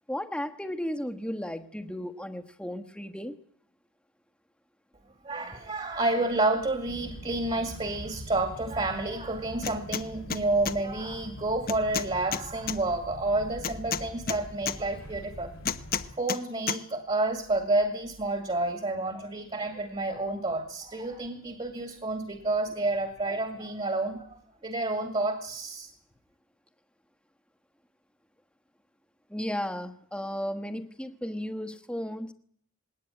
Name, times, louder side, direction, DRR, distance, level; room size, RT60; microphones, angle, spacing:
voice 1, 0.1-3.4 29.3-32.3, equal, 5° left, 7 dB, 1.3 m, -34 dB
voice 2, 5.2-15.5 16.2-25.9, right 2 dB, 25° right, 7 dB, 2.3 m, -30 dB
sound 1, 6.8-16.1, equal, 90° left, 2.8 m, -44 dB
sound 2, 9.6-10.0 10.3-10.8 11.7-12.8 13.6-14.8 15.6-16.4 16.7-16.8, left 7 dB, 45° left, 1.0 m, -31 dB
20.5 x 18.5 x 10.0 m, 0.63 s
head